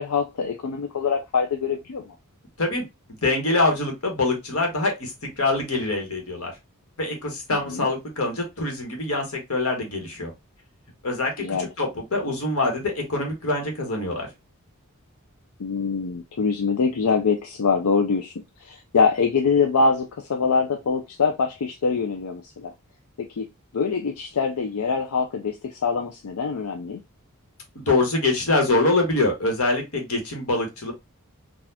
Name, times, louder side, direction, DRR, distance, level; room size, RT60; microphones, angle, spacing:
voice 1, 0.0-2.1 7.7-7.9 11.4-11.7 15.6-18.3 18.6-22.7 23.4-23.5 23.7-27.0, left 5 dB, 90° left, 4 dB, 0.5 m, -24 dB
voice 2, 3.2-5.1 5.4-6.5 7.0-10.3 11.0-14.3 27.7-30.9, left 2 dB, 70° left, 2 dB, 1.4 m, -24 dB
4.0 x 2.4 x 2.7 m, 0.21 s
head